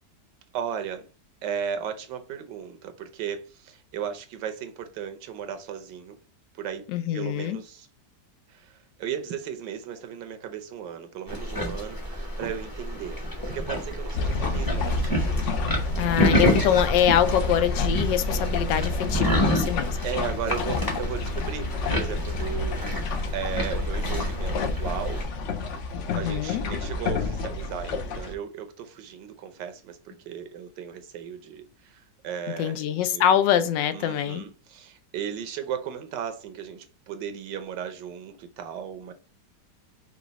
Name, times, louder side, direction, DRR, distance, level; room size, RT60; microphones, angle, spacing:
voice 1, 0.5-1.1 1.4-6.2 6.5-6.8 7.1-7.9 8.5-15.5 20.0-22.8 23.3-25.2 25.6-25.9 26.1-33.2 33.9-39.1, right 8 dB, 85° right, 1.4 m, -36 dB
voice 2, 6.9-7.6 16.0-20.0 26.1-26.6 32.6-34.4, left 10 dB, 85° left, 1.3 m, -24 dB
sound 1, 11.3-25.3, equal, 15° left, 0.7 m, -29 dB
sound 2, 14.1-28.3, left 3 dB, 65° left, 0.7 m, -29 dB
5.1 x 2.4 x 3.9 m
omnidirectional pair, 1.9 m